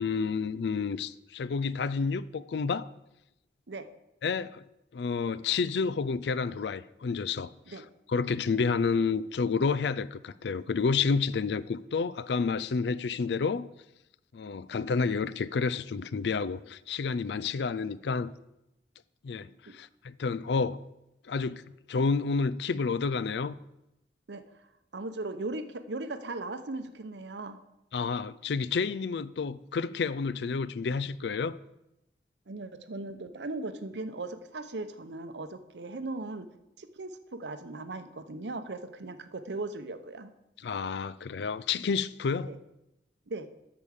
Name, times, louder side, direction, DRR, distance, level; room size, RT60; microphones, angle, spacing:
voice 1, 0.0-2.9 4.2-4.6 4.9-7.5 8.1-13.7 14.3-18.3 19.2-20.8 21.2-21.6 21.9-23.6 27.9-31.6 40.6-42.5, left 5 dB, 80° left, 0.4 m, -30 dB
voice 2, 24.3-24.7 24.9-27.6 32.5-36.5 36.8-40.3 42.4-42.6 43.3-43.5, right 2 dB, 90° right, 0.8 m, -38 dB
8.5 x 7.1 x 6.4 m
head